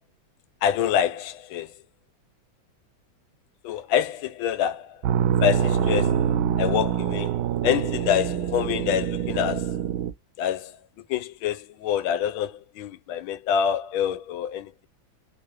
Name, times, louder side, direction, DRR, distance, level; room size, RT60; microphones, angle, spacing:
voice 1, 0.6-1.7 3.6-5.0 5.4-6.2 6.6-7.4 7.6-9.7 10.4-14.9, left 9 dB, 85° left, 1.5 m, -26 dB
sound 1, 5.0-10.1, right 9 dB, 80° right, 1.4 m, -25 dB
3.5 x 3.4 x 3.0 m
omnidirectional pair, 2.2 m